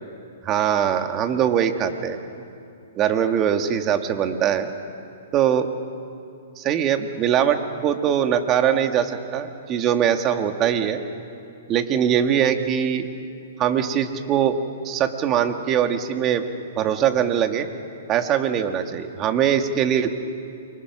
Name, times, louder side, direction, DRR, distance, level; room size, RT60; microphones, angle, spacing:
voice 1, 0.4-2.2 3.0-4.7 5.3-5.7 6.6-11.0 11.7-13.1 13.6-14.6 14.8-16.5 16.8-17.7 18.1-20.1, right 9 dB, 30° right, 6 dB, 2.0 m, -22 dB
29.0 x 24.5 x 6.2 m, 2.6 s
hypercardioid pair, 135°, 0 cm